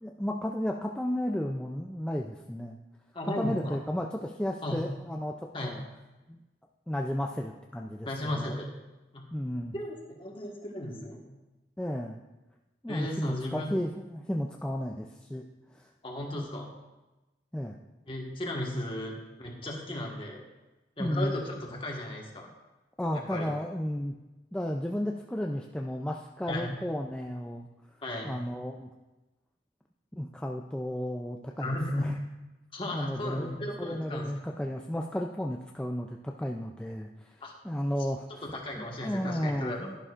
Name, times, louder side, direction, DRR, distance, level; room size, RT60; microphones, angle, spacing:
voice 1, 0.0-2.8 3.2-5.4 5.6-5.8 6.3-6.4 6.9-8.6 9.3-9.8 11.8-12.2 12.8-15.4 15.8-15.9 16.3-16.5 17.5-17.8 21.0-21.4 23.0-24.1 24.5-27.7 28.2-28.9 30.2-32.1 32.9-37.3 37.6-38.5 38.8-40.0, equal, 5° left, 1 dB, 0.4 m, -33 dB
voice 2, 3.1-3.8 4.6-4.8 5.5-5.7 8.0-8.7 9.1-9.2 9.7-11.2 12.9-13.8 16.0-16.7 18.1-20.4 21.0-22.5 23.1-23.5 26.5-26.7 28.0-28.3 31.6-32.2 32.7-34.3 37.4-37.5 38.4-39.9, left 1 dB, 30° left, 0 dB, 1.5 m, -35 dB
11.5 x 11.0 x 2.5 m, 1.1 s
head